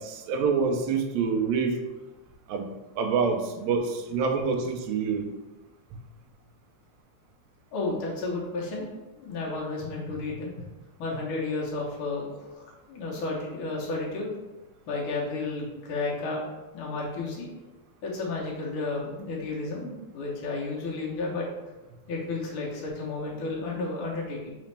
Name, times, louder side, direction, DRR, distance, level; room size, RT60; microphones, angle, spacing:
voice 1, 0.0-1.8 2.5-5.3 5.9-6.0, right 5 dB, 85° right, 4 dB, 1.5 m, -27 dB
voice 2, 7.7-8.9 9.1-10.7 11.0-14.3 14.9-16.4 16.7-17.5 18.0-21.5 22.1-24.5, left 3 dB, 75° left, -4 dB, 1.2 m, -32 dB
4.1 x 4.0 x 3.2 m, 1.1 s
omnidirectional pair, 3.7 m